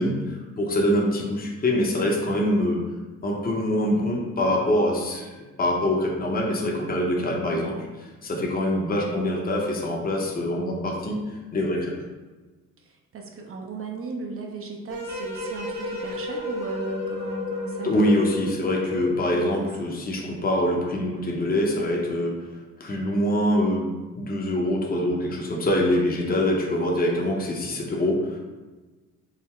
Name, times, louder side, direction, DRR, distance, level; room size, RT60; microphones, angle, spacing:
voice 1, 0.0-2.8 3.2-7.8 8.2-11.2 11.5-12.0 17.8-22.4 22.8-23.9 24.2-28.4, left 1 dB, 30° left, -1 dB, 0.8 m, -24 dB
voice 2, 7.1-7.6 12.8-17.9 19.3-20.0 26.2-26.5, right 2 dB, 45° right, 1 dB, 0.6 m, -37 dB
sound 1, 14.9-19.2, left 2 dB, 65° right, 1.2 m, -32 dB
3.7 x 2.0 x 4.3 m, 1.2 s
cardioid pair, 90°, 30 cm